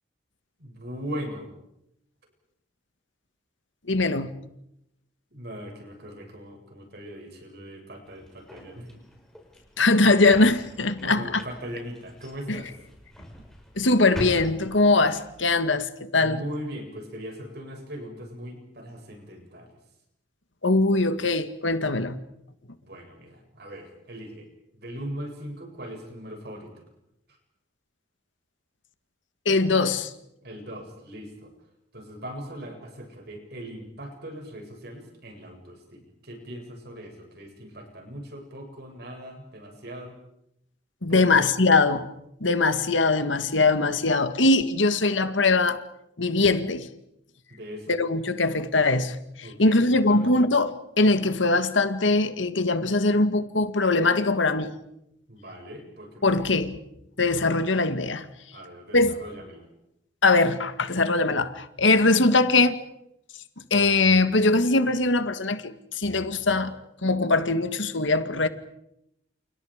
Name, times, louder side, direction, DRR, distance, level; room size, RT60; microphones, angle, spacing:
voice 1, 0.6-1.5 5.3-9.0 11.0-12.7 16.2-19.7 22.8-24.5 24.7-26.8 30.4-31.5 31.9-40.1 41.1-41.4 47.5-48.0 49.4-50.3 55.3-56.6 58.5-59.7, equal, 55° right, 7.8 m, -40 dB
voice 2, 3.9-4.3 9.8-11.2 12.5-12.6 13.8-16.4 20.6-22.2 29.5-30.1 41.0-42.1 42.4-45.8 46.2-46.9 47.9-49.2 49.6-54.8 56.2-56.7 57.2-58.2 58.9-59.1 60.2-62.8 63.7-68.5, left 3 dB, 80° left, 1.9 m, -21 dB
sound 1, 8.1-15.5, equal, 5° left, 5.4 m, -43 dB
30.0 x 29.0 x 5.1 m
head